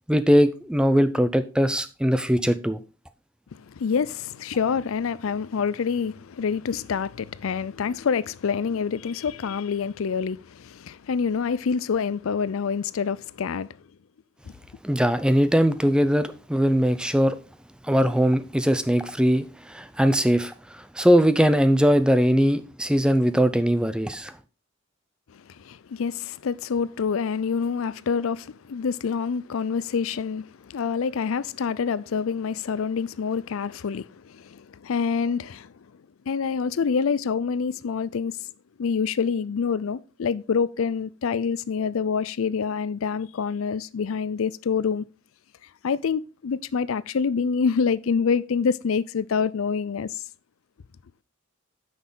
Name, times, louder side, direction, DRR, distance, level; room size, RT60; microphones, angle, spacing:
voice 1, 0.1-2.8 14.8-17.4 17.8-24.3, equal, 5° right, 0.5 m, -21 dB
voice 2, 3.6-13.7 25.3-35.7 36.3-38.5 38.8-45.0 45.8-50.2, left 6 dB, 80° left, 0.4 m, -26 dB
9.3 x 6.3 x 3.9 m
head